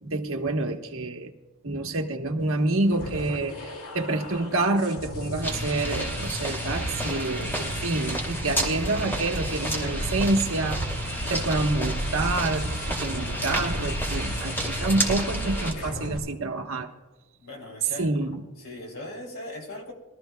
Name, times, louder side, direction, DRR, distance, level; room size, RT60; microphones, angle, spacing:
voice 1, 0.0-1.3 1.6-10.8 11.3-16.9 18.0-18.4, right 2 dB, 65° right, 3 dB, 1.2 m, -27 dB
sound 1, 2.9-16.2, equal, 90° left, 2.2 m, -35 dB
sound 2, 5.4-15.7, right 1 dB, 10° left, 2.4 m, -31 dB
voice 2, 17.4-18.2 18.6-19.9, left 1 dB, 65° left, 2 dB, 2.9 m, -39 dB
22.0 x 13.5 x 2.2 m, 1.2 s
head